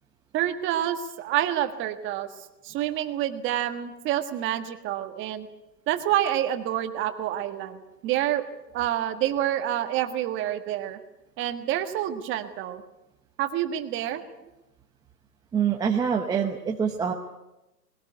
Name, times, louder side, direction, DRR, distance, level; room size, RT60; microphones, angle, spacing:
voice 1, 0.3-2.3 2.6-5.5 5.9-8.4 8.7-11.0 11.4-12.8 13.4-14.2, right 12 dB, 25° right, 9 dB, 1.6 m, -28 dB
voice 2, 15.5-17.1, right 7 dB, 10° right, 1 dB, 0.8 m, -25 dB
20.5 x 18.5 x 9.3 m, 0.98 s
hypercardioid pair, 135°, 48 cm